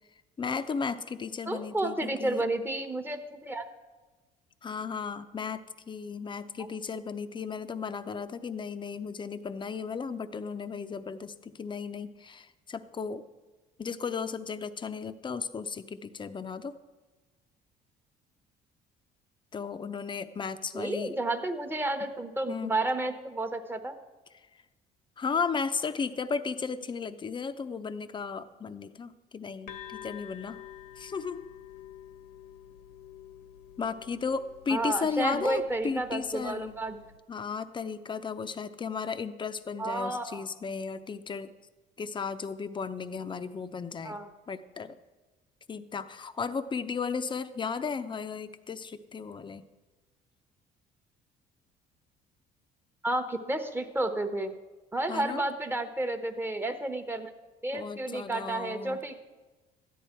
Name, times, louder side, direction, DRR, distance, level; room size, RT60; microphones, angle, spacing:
voice 1, 0.4-2.4 4.6-13.2 13.8-16.8 19.5-21.1 22.5-22.7 25.2-30.6 31.0-31.4 33.8-36.7 37.3-41.5 42.0-44.2 44.5-45.0 45.7-49.6 55.1-55.4 57.7-59.0, left 5 dB, 30° left, 11 dB, 0.7 m, -35 dB
voice 2, 1.5-3.7 20.7-23.9 34.7-37.0 39.8-40.4 44.0-44.3 53.0-54.5 54.9-57.3 57.6-59.1, right 2 dB, 15° right, 7 dB, 1.1 m, -31 dB
sound 1, 29.7-37.2, left 10 dB, 85° left, 1.4 m, -49 dB
13.5 x 10.0 x 4.5 m, 1.2 s
cardioid pair, 110°, 17 cm